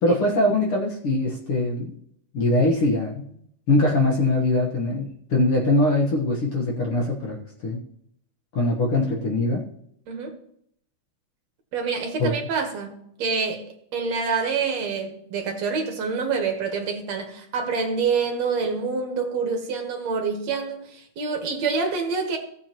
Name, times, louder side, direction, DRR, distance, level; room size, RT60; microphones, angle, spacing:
voice 1, 0.0-1.9 2.3-3.3 3.7-7.8 8.5-9.6 12.2-12.3, left 2 dB, 55° left, -1 dB, 1.8 m, -22 dB
voice 2, 11.7-13.7 13.9-22.4, right 5 dB, 60° right, 3 dB, 2.2 m, -27 dB
16.5 x 7.4 x 3.0 m, 0.70 s
omnidirectional pair, 3.7 m